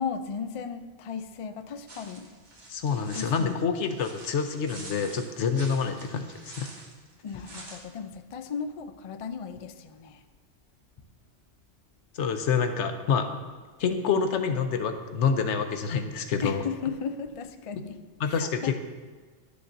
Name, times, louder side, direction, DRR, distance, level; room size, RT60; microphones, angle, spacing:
voice 1, 0.0-2.3 3.1-3.7 7.2-10.2 16.4-18.0 18.3-18.8, left 6 dB, 60° left, 9 dB, 0.3 m, -35 dB
sound 1, 1.9-7.8, right 2 dB, 40° right, 1.3 m, -47 dB
voice 2, 2.7-6.3 6.6-6.7 12.1-13.4 13.8-16.6 18.2-18.8, left 6 dB, 90° left, 7 dB, 1.0 m, -27 dB
11.5 x 6.8 x 2.6 m, 1.4 s
omnidirectional pair, 1.2 m